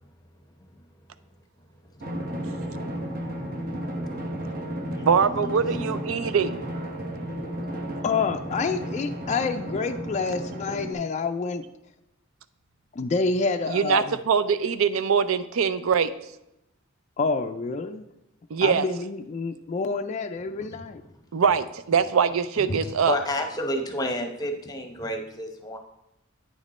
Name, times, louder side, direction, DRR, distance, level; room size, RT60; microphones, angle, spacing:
Drum, 2.0-10.9, right 1 dB, 45° right, 1.2 m, -33 dB
voice 1, 4.0-5.9 7.0-8.0 22.6-22.8 23.1-25.8, left 1 dB, 20° left, 4 dB, 0.8 m, -33 dB
voice 2, 5.0-6.6 13.7-16.1 18.5-18.9 21.3-23.2, right 6 dB, 85° right, 14 dB, 0.4 m, -23 dB
voice 3, 8.0-11.6 12.9-14.2 17.2-18.0 18.6-21.0, left 4 dB, 35° left, 6 dB, 0.3 m, -28 dB
9.0 x 5.1 x 4.2 m, 0.87 s
head